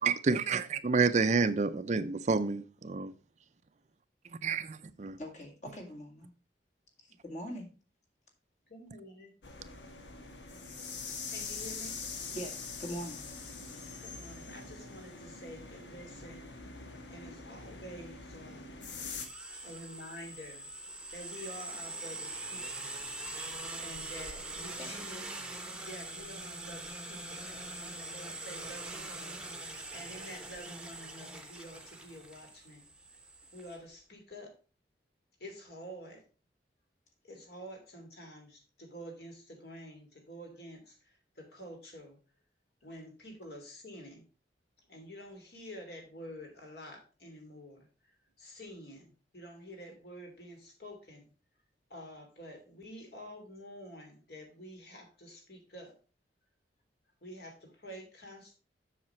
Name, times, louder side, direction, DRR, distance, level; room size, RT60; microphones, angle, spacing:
voice 1, 0.0-3.1 4.4-4.6 5.0-5.2, right 4 dB, 40° right, 0.5 m, -28 dB
voice 2, 5.2-6.3 7.2-7.7 12.3-13.2 19.5-19.7 24.8-24.9, equal, 40° left, 2.1 m, -42 dB
voice 3, 8.7-9.3 11.2-12.0 14.0-16.5 16.8-18.7 19.6-20.7 21.1-22.9 23.8-25.3 25.6-32.9 33.5-34.5 35.4-36.2 37.2-42.2 42.8-44.2 44.9-47.9 48.4-51.3 51.9-55.9 57.2-58.5, equal, 60° left, 2.8 m, -49 dB
sound 1, 9.4-19.3, left 4 dB, 85° left, 1.3 m, -43 dB
sound 2, 19.1-33.8, right 2 dB, 5° right, 0.9 m, -43 dB
7.5 x 6.6 x 4.3 m
head